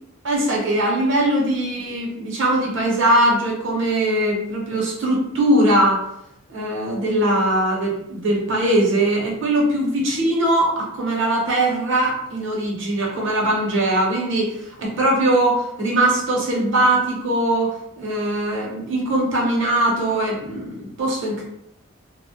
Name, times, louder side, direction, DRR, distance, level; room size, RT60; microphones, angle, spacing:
voice 1, 0.2-6.0 6.5-21.4, right 1 dB, 65° right, -2 dB, 0.7 m, -21 dB
2.1 x 2.0 x 2.9 m, 0.81 s
head